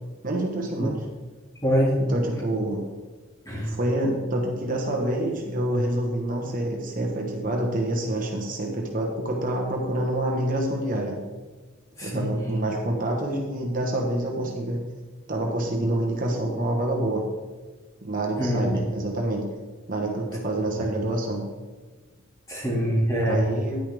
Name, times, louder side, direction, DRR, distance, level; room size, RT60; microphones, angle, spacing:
voice 1, 0.2-1.0 2.0-2.8 3.6-11.2 12.0-14.8 15.3-17.2 18.0-19.5 19.9-21.5 23.2-23.8, right 1 dB, 40° right, 0 dB, 1.3 m, -27 dB
voice 2, 1.6-2.0 3.5-3.7 12.0-12.6 18.4-18.7 20.7-20.8 22.5-23.4, equal, 15° left, -3 dB, 2.3 m, -24 dB
10.5 x 9.6 x 3.5 m, 1.4 s
head